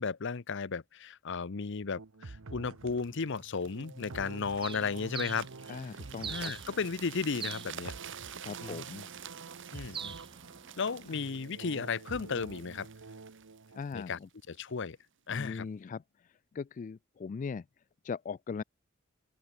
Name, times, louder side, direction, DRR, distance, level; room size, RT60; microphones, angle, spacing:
voice 1, 0.0-5.5 6.3-8.0 8.6-8.8 9.7-10.2 10.8-12.9 13.9-14.2 14.5-15.0 15.3-15.7, left 5 dB, 60° left, 0.7 m, -34 dB
sound 1, 2.0-13.8, right 3 dB, 85° right, 1.0 m, -48 dB
sound 2, 2.9-14.7 15.3-15.5, right 8 dB, 60° right, 2.1 m, -49 dB
Bird, 4.6-11.3, right 6 dB, 25° right, 0.9 m, -46 dB
voice 2, 5.7-6.5 8.4-9.1 13.7-14.3 15.3-17.6 18.0-18.6, left 5 dB, 40° left, 0.3 m, -40 dB
open air
head